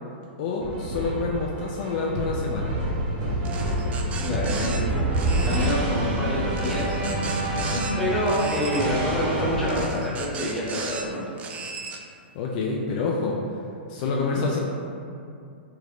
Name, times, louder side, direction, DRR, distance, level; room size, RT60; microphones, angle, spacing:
voice 1, 0.4-2.8 12.3-13.4 13.9-14.6, left 4 dB, 50° left, -2 dB, 0.4 m, -27 dB
sound 1, 0.6-9.9, right 1 dB, 45° right, 0.7 m, -27 dB
sound 2, 3.4-4.8 5.1-5.8 6.6-7.9 8.3-8.9 9.7-11.0 11.4-12.0, right 5 dB, 25° right, 0.3 m, -36 dB
voice 2, 4.2-4.8 5.4-6.9 7.7-11.3 14.2-14.4, equal, 5° left, -8 dB, 0.9 m, -27 dB
3.3 x 3.3 x 2.4 m, 2.5 s
hypercardioid pair, 115°, 6 cm